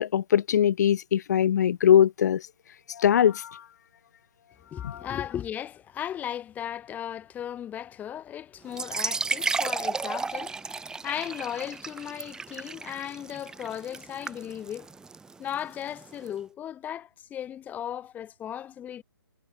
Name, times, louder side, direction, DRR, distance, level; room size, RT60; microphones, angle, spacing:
voice 1, 0.0-2.4 3.0-3.4 4.8-5.0, left 9 dB, 45° left, 1.3 m, -21 dB
voice 2, 4.7-14.9 15.4-19.0, left 10 dB, 15° left, 3.3 m, -36 dB
sound 1, 8.7-16.3, right 4 dB, 5° right, 1.6 m, -34 dB
figure-of-eight pair, 140°, 13 cm